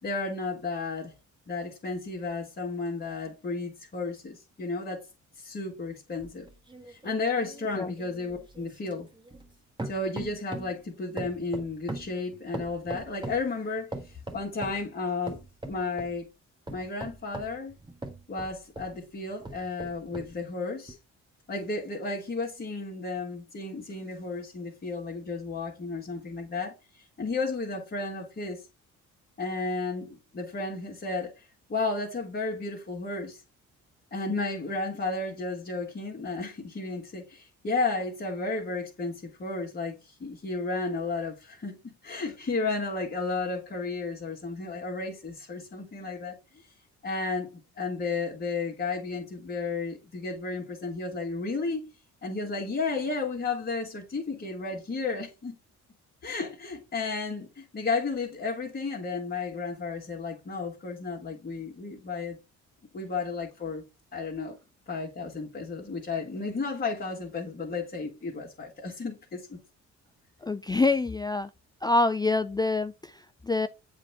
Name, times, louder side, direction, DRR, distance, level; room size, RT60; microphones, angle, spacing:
voice 1, 0.0-1.1 1.5-5.0 5.4-6.5 6.9-9.1 9.8-15.4 15.7-16.3 16.7-17.7 18.3-21.0 21.5-28.7 29.4-33.4 34.1-46.7 47.0-51.9 52.2-55.6 56.2-62.4 62.9-63.9 64.1-64.6 64.9-69.6, left 3 dB, 35° left, 1.8 m, -33 dB
sound 1, 6.2-9.5 9.8-10.8 11.2-13.5 13.9-14.8 15.3-16.2 16.7-19.0 19.4-20.4 20.9-21.0, right 2 dB, 15° right, 1.5 m, -40 dB
voice 2, 70.4-71.5 71.8-73.7, left 3 dB, 15° left, 0.3 m, -26 dB
7.4 x 3.6 x 4.2 m
cardioid pair, 90°, 30 cm